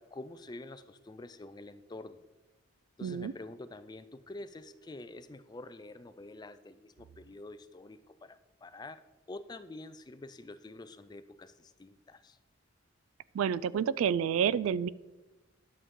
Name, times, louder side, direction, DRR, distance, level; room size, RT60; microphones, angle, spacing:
voice 1, 0.0-2.2 3.0-9.0 9.3-12.4, left 2 dB, 20° left, 13 dB, 0.3 m, -47 dB
voice 2, 3.0-3.3 13.3-14.9, right 8 dB, 85° right, 20 dB, 0.3 m, -29 dB
11.0 x 6.9 x 3.7 m, 1.1 s
head